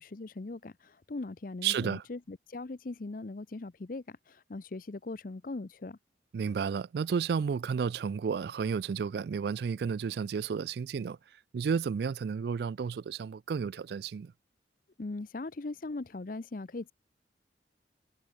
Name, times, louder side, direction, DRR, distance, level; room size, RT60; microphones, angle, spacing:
voice 1, 0.0-6.0 15.0-16.9, left 2 dB, 50° left, 0.6 m, -40 dB
voice 2, 1.6-2.0 6.3-11.2 11.5-14.3, right 6 dB, 60° right, 0.3 m, -32 dB
head